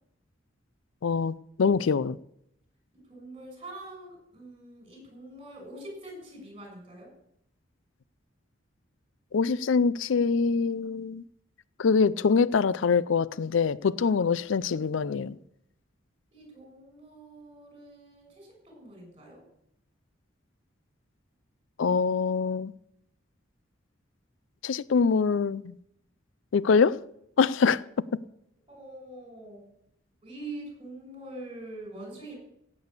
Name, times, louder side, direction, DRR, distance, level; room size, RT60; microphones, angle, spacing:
voice 1, 1.0-2.2 9.3-11.2 11.8-15.4 21.8-22.7 24.6-25.6 26.5-27.0 27.4-27.8 28.1-28.2, left 5 dB, 75° left, 0.4 m, -24 dB
voice 2, 2.9-7.1 14.1-15.5 16.3-19.4 28.7-29.6 30.2-32.3, right 2 dB, 30° right, 6.5 m, -45 dB
16.5 x 8.5 x 6.7 m
head